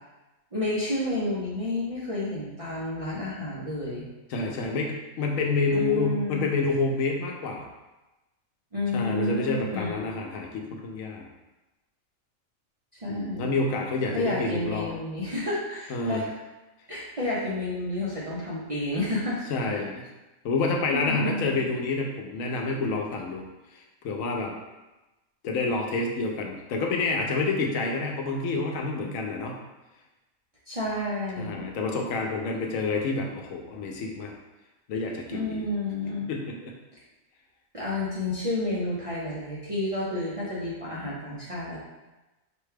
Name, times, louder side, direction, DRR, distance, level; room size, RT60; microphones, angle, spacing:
voice 1, 0.5-4.1 5.7-6.5 8.7-10.0 13.0-13.5 14.1-16.3 16.9-19.4 19.6-19.8 20.9-21.6 30.7-31.7 35.3-36.3 37.7-41.8, left 1 dB, 35° right, -8 dB, 0.6 m, -30 dB
voice 2, 4.3-7.7 8.9-11.3 13.1-15.0 15.9-16.2 19.5-20.0 20.4-23.5 23.7-24.5 25.4-29.5 31.4-34.3 34.9-35.6 36.3-36.7, left 3 dB, 90° left, 1 dB, 1.0 m, -28 dB
4.9 x 2.2 x 3.3 m, 1.1 s
omnidirectional pair, 1.4 m